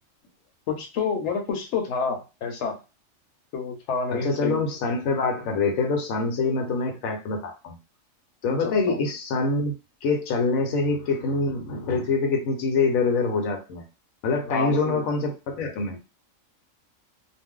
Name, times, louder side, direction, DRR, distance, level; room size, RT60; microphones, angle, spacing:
voice 1, 0.7-2.8 3.5-4.6 8.6-9.0 14.5-15.3, left 5 dB, 65° left, 0.9 m, -29 dB
voice 2, 4.1-7.8 8.4-9.7 10.0-13.8 14.2-16.0, left 3 dB, 85° left, 1.1 m, -25 dB
2.5 x 2.1 x 3.6 m
omnidirectional pair, 1.4 m